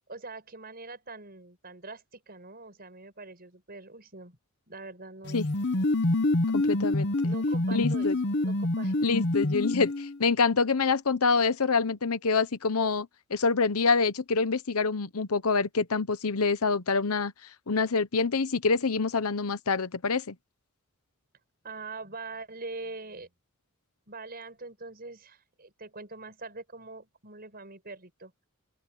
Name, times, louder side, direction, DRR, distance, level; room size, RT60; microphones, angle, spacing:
voice 1, 0.1-4.4 4.7-5.5 7.2-8.1 8.4-9.1 21.6-23.3 24.1-28.3, right 3 dB, 45° right, 6.2 m, -43 dB
sound 1, 5.3-10.2, left 2 dB, 50° left, 1.1 m, -27 dB
voice 2, 6.5-7.1 7.7-8.1 9.0-17.3 17.7-20.3, left 4 dB, 80° left, 1.0 m, -26 dB
open air
head